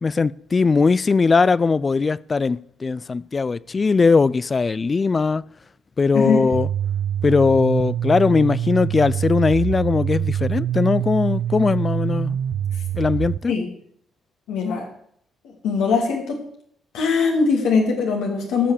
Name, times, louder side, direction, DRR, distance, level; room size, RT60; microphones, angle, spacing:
voice 1, 0.0-5.4 6.0-6.7 7.2-12.4 13.0-13.5, left 4 dB, 30° left, 0.4 m, -19 dB
sound 1, 6.5-13.4, right 10 dB, 80° right, 0.4 m, -25 dB
voice 2, 14.5-14.9 15.6-16.5 16.9-18.7, left 5 dB, 85° left, 2.6 m, -21 dB
13.5 x 5.6 x 6.6 m
cardioid pair, 90°, 0 cm